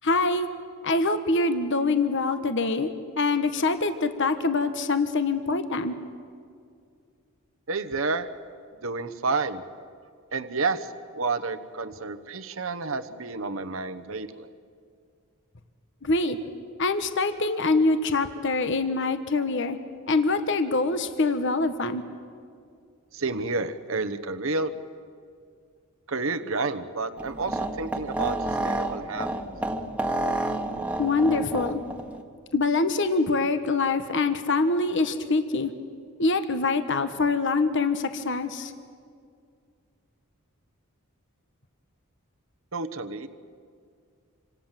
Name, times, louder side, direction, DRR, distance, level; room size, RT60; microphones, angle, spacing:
voice 1, 0.0-0.5 0.8-5.9 16.0-16.4 16.8-19.8 20.1-22.0 31.0-31.8 32.5-35.7 36.2-38.7, left 3 dB, 60° left, 9 dB, 1.3 m, -24 dB
voice 2, 7.7-8.3 8.8-9.6 10.3-14.5 23.1-24.7 26.1-29.4 42.7-43.3, right 3 dB, 65° right, 9 dB, 1.2 m, -30 dB
sound 1, 27.2-32.2, right 1 dB, 5° right, 1.6 m, -30 dB
27.5 x 26.0 x 7.6 m, 2.2 s
head